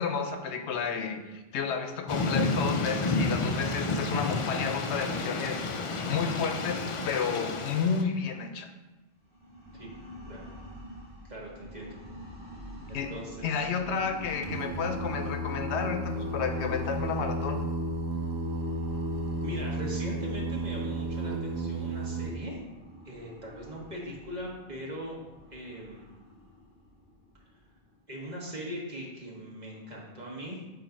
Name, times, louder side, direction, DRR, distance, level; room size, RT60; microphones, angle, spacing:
voice 1, 0.0-5.6 6.1-8.7 12.9-13.1 13.4-17.7, left 5 dB, 80° left, 6 dB, 0.9 m, -31 dB
Thunder / Rain, 2.1-8.0, left 3 dB, 50° left, 0.4 m, -30 dB
sound 1, 9.2-28.0, left 1 dB, 10° left, 1.8 m, -47 dB
voice 2, 11.2-12.0 12.9-13.7 19.4-22.6 23.0-25.2 25.5-26.2 28.1-30.6, equal, 40° right, -3 dB, 1.3 m, -40 dB
Singing, 14.4-22.3, right 1 dB, 85° right, 0.9 m, -33 dB
7.3 x 2.7 x 5.1 m, 1.1 s
omnidirectional pair, 1.1 m